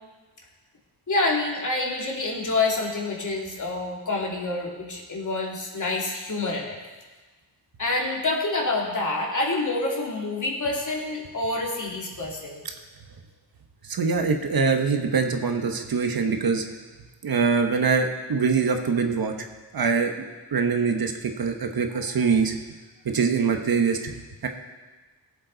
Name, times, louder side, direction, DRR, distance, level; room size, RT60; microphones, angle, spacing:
voice 1, 1.1-6.8 7.8-12.6, left 2 dB, 45° left, -2 dB, 2.7 m, -27 dB
voice 2, 13.9-16.6 17.2-19.3 19.7-20.1 20.5-22.5 23.1-24.1 24.4-24.5, right 5 dB, 60° right, 5 dB, 1.3 m, -23 dB
17.0 x 7.6 x 4.0 m, 1.3 s
cardioid pair, 70°, 40 cm